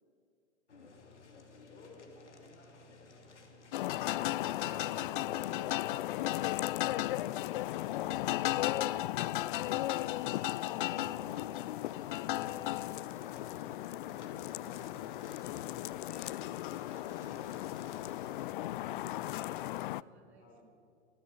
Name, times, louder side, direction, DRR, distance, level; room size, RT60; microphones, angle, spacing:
sound 1, 0.7-19.8, left 3 dB, 75° left, 2.7 m, -55 dB
voice 1, 1.7-3.3 20.2-20.6, left 2 dB, 25° left, 4 dB, 4.0 m, -57 dB
sound 2, 3.7-20.0, left 15 dB, 45° left, 0.4 m, -35 dB
voice 2, 4.3-5.9 9.3-10.6 16.8-20.5, right 5 dB, 60° right, 4 dB, 2.7 m, -60 dB
27.0 x 14.0 x 7.1 m, 2.7 s
figure-of-eight pair, 100°, 35 cm